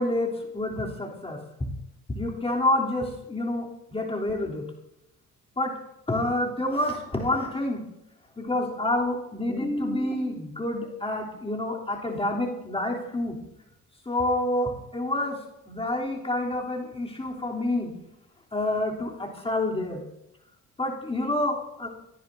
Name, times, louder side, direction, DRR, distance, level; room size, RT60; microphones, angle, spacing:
voice 1, 0.0-1.4 2.1-4.7 5.6-5.7 6.1-7.8 8.4-13.4 14.0-15.4 15.7-17.9 18.5-20.0 20.8-21.9, left 1 dB, 20° left, -2 dB, 3.4 m, -28 dB
25.5 x 10.5 x 2.8 m, 0.86 s
cardioid pair, 90°, 30 cm